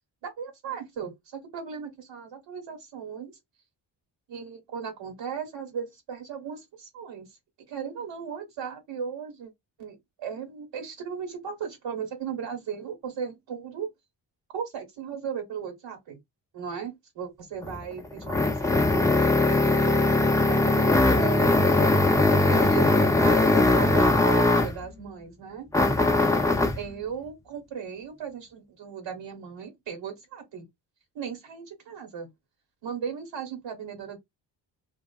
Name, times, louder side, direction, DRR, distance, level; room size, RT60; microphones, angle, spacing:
voice 1, 0.2-3.4 4.3-7.3 7.7-9.5 9.8-13.9 14.5-16.2 16.5-20.0 20.5-21.9 22.5-25.7 26.6-30.6 31.1-32.3 32.8-34.2, right 7 dB, 75° right, 1.3 m, -37 dB
sound 1, 17.6-24.8 25.7-26.8, left 2 dB, 10° left, 0.4 m, -21 dB
2.4 x 2.4 x 2.3 m
cardioid pair, 65°, 44 cm